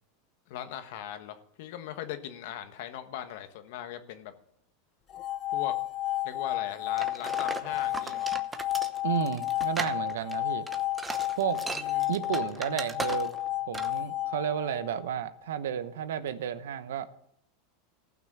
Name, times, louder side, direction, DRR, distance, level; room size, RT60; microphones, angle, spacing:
voice 1, 0.5-4.3 5.5-5.7 6.2-8.3 11.7-12.8, left 11 dB, 65° left, 9 dB, 1.3 m, -40 dB
sound 1, 5.1-15.3, left 15 dB, 35° left, 0.6 m, -32 dB
sound 2, 7.0-13.5 13.7-14.0, right 3 dB, 15° right, 0.8 m, -38 dB
voice 2, 9.0-10.7 11.4-11.7 12.1-13.3 13.7-17.1, right 9 dB, 90° right, 13 dB, 0.9 m, -32 dB
15.0 x 6.0 x 7.4 m, 0.75 s
supercardioid pair, 130°, 0 cm